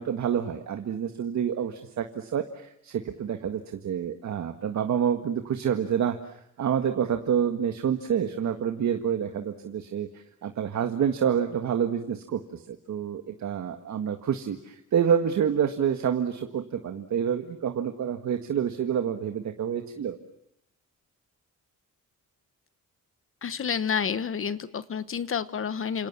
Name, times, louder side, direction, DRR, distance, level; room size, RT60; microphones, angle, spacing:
voice 1, 0.0-20.2, right 8 dB, 60° right, 6 dB, 1.8 m, -28 dB
voice 2, 23.4-26.1, left 7 dB, 40° left, 14 dB, 1.2 m, -29 dB
29.5 x 27.5 x 7.3 m, 0.75 s
wide cardioid pair, 160°, 32 cm